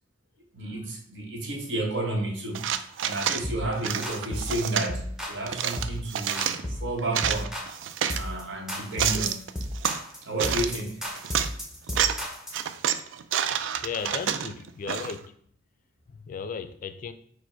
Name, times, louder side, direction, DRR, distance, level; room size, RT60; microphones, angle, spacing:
voice 1, 0.5-2.7 3.0-7.5 8.1-9.5 10.2-11.0, right 1 dB, 70° right, 1 dB, 1.0 m, -31 dB
sound 1, 2.5-3.4 3.8-4.9 5.5-6.6 7.0-8.2 8.7-10.0 10.4-10.8 11.1-11.5 11.9-12.2 12.5-15.2, right 9 dB, 85° right, 0.3 m, -28 dB
sound 2, 3.4-3.7 4.0-4.5 4.9-5.4 5.8-6.0 6.3-6.9 7.2-7.8 8.1-8.4 8.7-12.6, equal, 5° right, 0.7 m, -34 dB
voice 2, 13.8-15.3 16.1-17.1, left 6 dB, 45° left, 10 dB, 0.3 m, -35 dB
5.0 x 2.1 x 4.4 m, 0.63 s
head